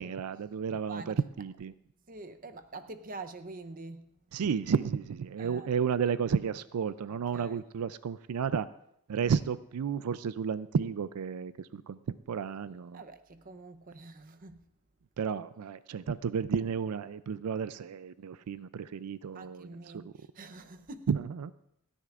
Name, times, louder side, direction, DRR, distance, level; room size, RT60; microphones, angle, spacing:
voice 1, 0.0-1.7 4.3-8.7 9.1-13.0 15.2-20.1 21.1-21.5, right 6 dB, 90° right, 15 dB, 0.4 m, -32 dB
voice 2, 0.9-1.2 2.1-4.1 5.4-5.7 7.1-7.6 12.9-14.6 19.3-21.1, right 3 dB, 40° right, 8 dB, 0.7 m, -46 dB
29.5 x 10.0 x 2.5 m, 0.76 s
head